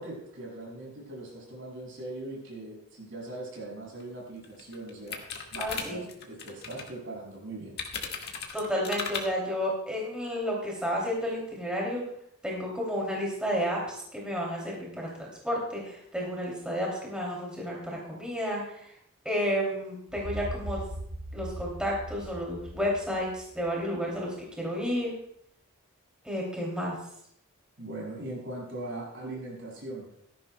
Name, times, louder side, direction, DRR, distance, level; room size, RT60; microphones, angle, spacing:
voice 1, 0.0-7.7 27.8-30.1, right 2 dB, 60° right, -2 dB, 6.1 m, -40 dB
sound 1, 4.0-4.1 4.4-6.9 7.8-9.2, left 6 dB, 50° left, 1.6 m, -36 dB
voice 2, 5.6-6.0 8.5-12.0 12.4-18.8 19.2-20.8 21.3-25.1 26.2-26.9, equal, 5° right, -3 dB, 2.8 m, -31 dB
sound 2, 20.1-24.0, right 1 dB, 80° right, 4.6 m, -40 dB
17.0 x 14.0 x 2.2 m, 0.72 s
head